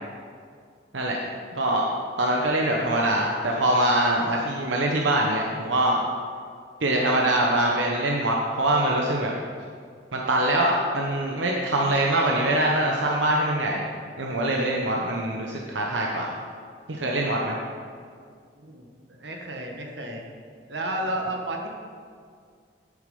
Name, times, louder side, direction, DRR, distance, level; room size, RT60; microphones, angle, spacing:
voice 1, 1.5-1.9 2.2-6.0 6.8-9.3 10.1-13.8 14.2-16.3 16.9-17.6, right 1 dB, 90° right, -1 dB, 1.0 m, -23 dB
voice 2, 18.6-20.2 20.7-21.7, right 1 dB, 70° right, 1 dB, 1.4 m, -32 dB
8.8 x 8.4 x 5.5 m, 2.1 s
head